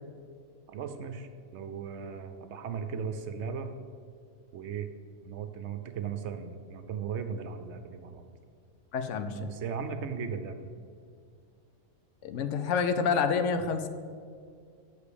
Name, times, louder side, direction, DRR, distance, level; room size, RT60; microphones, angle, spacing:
voice 1, 0.7-3.7 4.5-4.9 5.2-8.3 9.3-10.7, right 6 dB, 65° right, 8 dB, 0.8 m, -37 dB
voice 2, 8.9-9.5 12.2-13.9, left 5 dB, 70° left, 9 dB, 0.9 m, -28 dB
6.7 x 4.9 x 6.8 m, 2.2 s
omnidirectional pair, 1.4 m